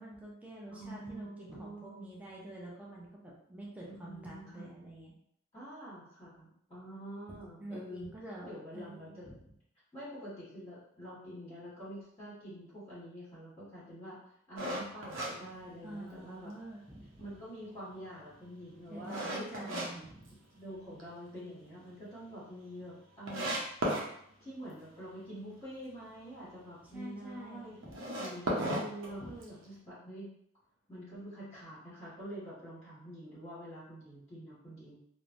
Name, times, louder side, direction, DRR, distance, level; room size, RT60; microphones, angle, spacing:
voice 1, 0.0-5.1 7.6-9.4 15.8-17.2 18.9-20.3 26.9-28.0 29.2-29.3, right 1 dB, 5° right, -5 dB, 0.5 m, -47 dB
voice 2, 0.7-2.1 3.9-4.7 5.5-8.0 8.4-9.3 9.9-14.2 14.5-16.5 17.2-20.1 20.5-23.6 24.4-30.3 30.9-35.0, equal, 15° left, -11 dB, 1.2 m, -46 dB
sound 1, 14.6-16.3 16.7-16.8 17.3-19.9 20.2-21.0 21.3-21.4 21.8-21.9 22.1-22.2 22.8-22.9 23.3-24.1 27.8-29.7, right 1 dB, 80° right, 0.7 m, -35 dB
3.1 x 2.1 x 2.5 m, 0.72 s
head